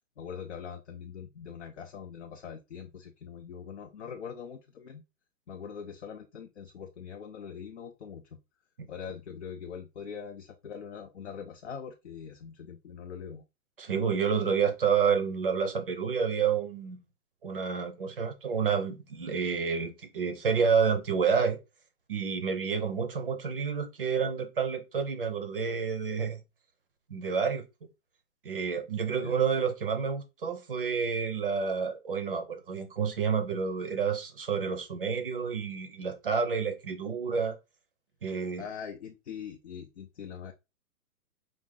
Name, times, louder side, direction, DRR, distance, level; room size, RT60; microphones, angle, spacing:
voice 1, 0.2-5.0 5.5-8.4 8.9-13.4 29.2-29.3 38.3-40.5, left 7 dB, 50° left, 0.6 m, -42 dB
voice 2, 13.8-17.0 17.4-21.6 22.1-26.4 27.1-27.6 28.4-37.6 38.2-38.6, right 6 dB, 35° right, 0.7 m, -29 dB
5.0 x 2.5 x 3.6 m
hypercardioid pair, 165°, 46 cm